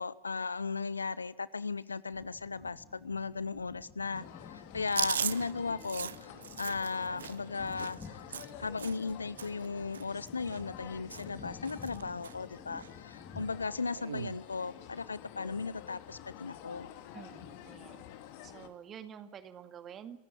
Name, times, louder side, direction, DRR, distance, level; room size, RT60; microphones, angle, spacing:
voice 1, 0.0-8.3 8.6-16.9, left 4 dB, 75° left, 20 dB, 0.7 m, -36 dB
sound 1, 2.1-14.0, left 5 dB, 20° left, 2.6 m, -52 dB
sound 2, 4.1-18.7, left 11 dB, 50° left, 2.5 m, -50 dB
Chewing mastication, 4.9-9.1 9.4-9.7 9.9-10.8 11.1-11.4 11.7-12.3 12.8-12.9 14.0-14.4, right 8 dB, 65° right, 0.7 m, -38 dB
voice 2, 17.1-18.1 18.4-20.2, right 8 dB, 25° right, 9 dB, 2.1 m, -48 dB
29.0 x 15.0 x 8.1 m, 0.97 s
figure-of-eight pair, 90°, 0 cm